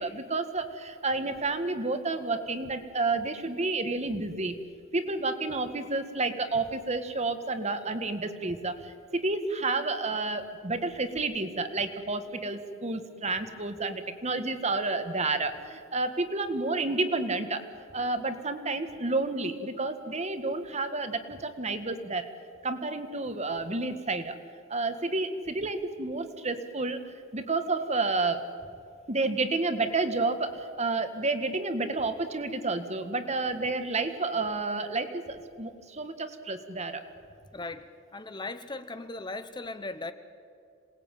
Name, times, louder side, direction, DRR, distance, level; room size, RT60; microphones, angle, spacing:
voice 1, 0.0-4.6 4.9-17.6 17.9-22.3 22.6-24.4 24.7-28.4 29.1-37.0, right 3 dB, 35° right, 9 dB, 1.6 m, -30 dB
voice 2, 37.5-40.1, left 2 dB, 20° left, 11 dB, 0.8 m, -38 dB
27.0 x 19.5 x 9.1 m, 2.3 s
head